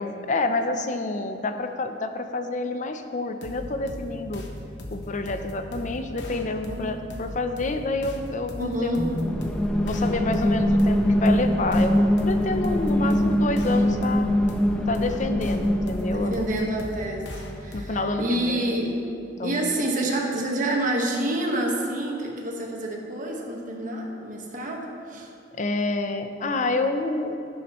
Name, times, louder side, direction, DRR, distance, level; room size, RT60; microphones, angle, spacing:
voice 1, 0.0-4.4 4.9-9.0 9.8-11.9 12.2-14.3 14.9-16.5 17.7-18.8 19.4-19.7 25.5-27.4, left 2 dB, 45° left, 7 dB, 0.6 m, -28 dB
sound 1, 3.4-18.2, left 1 dB, 75° left, 1.1 m, -38 dB
voice 2, 8.6-9.1 12.9-13.3 16.1-19.0 19.4-25.3, right 1 dB, 50° right, -1 dB, 1.5 m, -28 dB
sound 2, 9.0-16.7, equal, 5° left, 0.6 m, -23 dB
11.5 x 10.5 x 3.1 m, 2.6 s
head